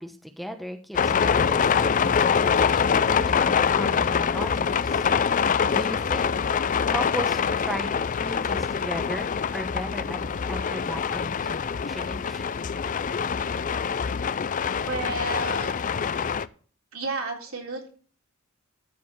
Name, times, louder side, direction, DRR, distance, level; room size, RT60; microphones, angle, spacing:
voice 1, 0.0-5.1 5.7-6.6 6.9-7.9 8.2-10.2 10.5-12.5 17.5-17.6, equal, ahead, 5 dB, 1.0 m, -36 dB
sound 1, 0.9-16.5, left 6 dB, 40° left, 0.4 m, -24 dB
voice 2, 14.9-15.8 16.9-17.9, right 2 dB, 70° right, 0 dB, 3.6 m, -31 dB
13.5 x 4.8 x 7.2 m, 0.41 s
head